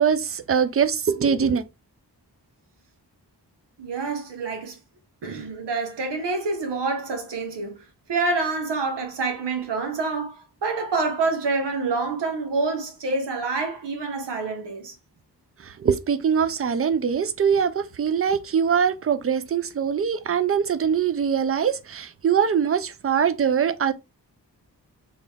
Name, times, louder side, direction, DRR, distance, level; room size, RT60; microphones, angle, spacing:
voice 1, 0.0-1.6 15.6-23.9, right 7 dB, 35° right, 0.5 m, -22 dB
voice 2, 3.8-4.8 5.2-7.8 8.1-14.9, right 3 dB, 90° right, 1.1 m, -27 dB
3.4 x 2.9 x 3.4 m
cardioid pair, 45°, 40 cm